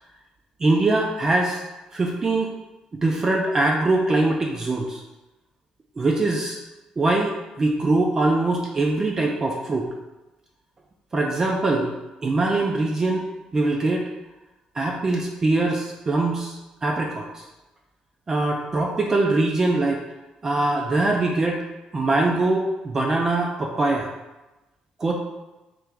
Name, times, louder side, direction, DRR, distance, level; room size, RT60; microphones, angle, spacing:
voice 1, 0.6-1.6 1.9-2.5 3.0-5.0 6.0-6.6 7.0-7.3 7.6-9.9 11.1-11.9 12.2-13.2 13.5-14.0 14.8-16.5 16.8-17.2 18.3-20.0 20.4-21.6 21.9-24.1 25.0-25.1, right 2 dB, 25° right, 0 dB, 0.4 m, -22 dB
3.3 x 2.9 x 3.5 m, 1.0 s
cardioid pair, 140°, 2 cm